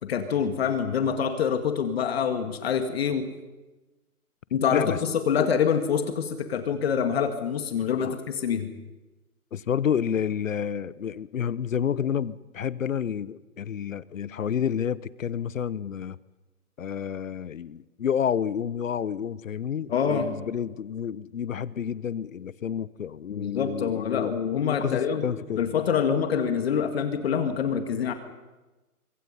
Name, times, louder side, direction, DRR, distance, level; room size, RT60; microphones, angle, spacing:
voice 1, 0.0-3.3 4.5-8.7 19.9-20.3 23.3-25.3 25.6-28.1, left 7 dB, 40° left, 8 dB, 1.8 m, -26 dB
voice 2, 9.5-16.2 16.8-25.6, left 8 dB, 60° left, 20 dB, 1.0 m, -30 dB
25.0 x 24.0 x 5.5 m, 1.1 s
figure-of-eight pair, 140°, 45 cm